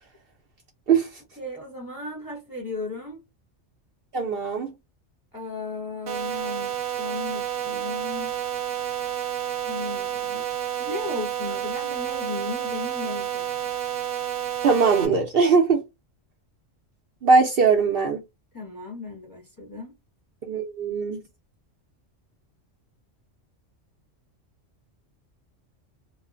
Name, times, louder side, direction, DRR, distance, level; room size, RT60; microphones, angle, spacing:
voice 1, 1.4-3.2 5.3-8.3 9.7-10.5 10.8-13.5 18.5-19.9, left 3 dB, 20° left, 0.8 m, -36 dB
voice 2, 4.1-4.7 14.6-15.8 17.2-18.2 20.4-21.2, right 5 dB, 60° right, 0.7 m, -20 dB
sound 1, 6.1-15.1, right 10 dB, 85° right, 1.1 m, -30 dB
3.0 x 2.1 x 2.4 m
omnidirectional pair, 1.3 m